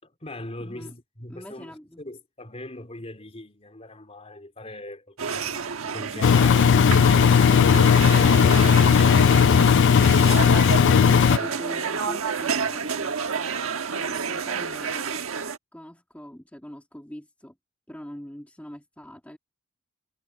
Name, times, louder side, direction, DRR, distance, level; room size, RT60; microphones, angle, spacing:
voice 1, 0.0-6.5 11.0-11.6, left 1 dB, 30° left, 4.0 m, -41 dB
voice 2, 0.6-0.9 1.3-2.0 11.3-13.2 13.9-15.2 15.7-17.6 17.9-19.4, equal, 5° left, 1.9 m, -42 dB
sound 1, 5.2-15.6, right 5 dB, 75° right, 1.3 m, -29 dB
Engine, 6.2-11.4, left 7 dB, 60° left, 0.4 m, -17 dB
head